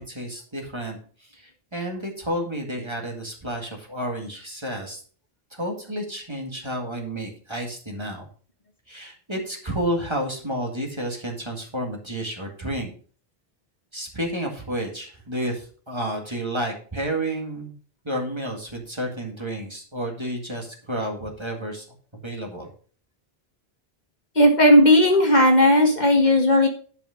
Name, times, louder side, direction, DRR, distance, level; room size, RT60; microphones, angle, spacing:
voice 1, 0.0-5.0 5.5-8.3 8.9-12.9 13.9-17.7 18.0-21.9 22.2-22.7, right 1 dB, 25° right, 1 dB, 2.1 m, -31 dB
voice 2, 24.3-26.7, left 1 dB, 45° left, 3 dB, 1.6 m, -15 dB
10.5 x 5.7 x 5.0 m, 0.42 s
omnidirectional pair, 1.0 m